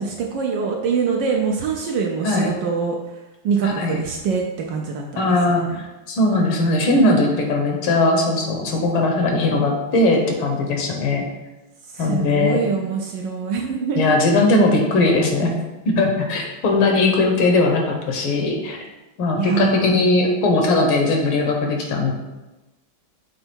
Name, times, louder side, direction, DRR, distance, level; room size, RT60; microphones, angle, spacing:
voice 1, 0.0-3.0 3.4-5.8 11.9-14.2 19.4-19.9, right 6 dB, 70° right, 1 dB, 1.1 m, -24 dB
voice 2, 3.6-4.0 5.2-11.2 12.0-12.6 14.0-15.5 15.9-18.8 19.2-22.1, left 2 dB, 75° left, 1 dB, 1.8 m, -19 dB
6.7 x 3.3 x 4.4 m, 1.1 s
omnidirectional pair, 2.4 m